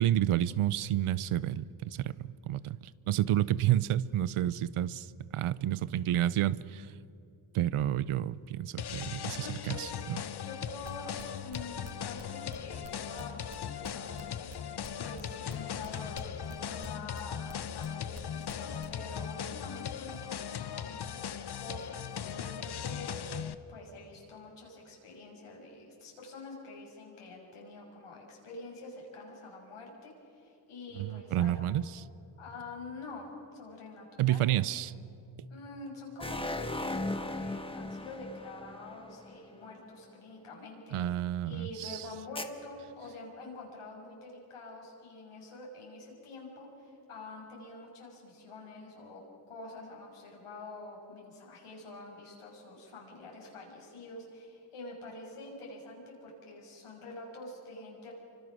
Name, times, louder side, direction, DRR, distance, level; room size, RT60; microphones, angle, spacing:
voice 1, 0.0-2.8 3.1-5.1 5.3-6.9 7.5-10.2 31.0-31.8 34.2-34.9 40.9-42.0, right 12 dB, 80° right, 18 dB, 0.7 m, -30 dB
sound 1, 8.8-23.5, left 8 dB, 50° left, 0.9 m, -39 dB
voice 2, 9.4-10.1 10.4-11.1 11.4-23.1 23.4-31.7 32.4-33.3 33.5-34.4 35.5-41.1 41.4-58.1, left 2 dB, 85° left, -1 dB, 6.4 m, -46 dB
sound 2, 10.8-16.5 16.8-18.2 18.5-18.9, right 6 dB, 55° right, 1.6 m, -49 dB
sound 3, 36.2-39.7 42.4-42.5, left 2 dB, 10° left, 1.3 m, -37 dB
27.0 x 25.0 x 6.2 m, 2.8 s
wide cardioid pair, 110°, 50 cm